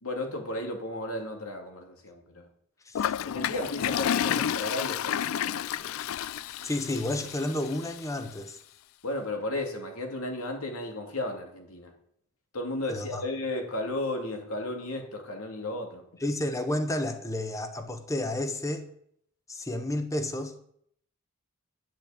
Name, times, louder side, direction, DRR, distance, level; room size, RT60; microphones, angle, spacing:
voice 1, 0.0-2.5 3.2-6.0 9.0-11.9 12.5-16.1, left 1 dB, 90° left, 2.7 m, -34 dB
Toilet flush, 2.9-8.0, left 9 dB, 70° left, 0.3 m, -30 dB
voice 2, 6.6-8.6 12.9-13.2 16.2-18.8 19.5-20.5, left 1 dB, 15° left, 1.0 m, -31 dB
10.0 x 6.3 x 8.8 m
head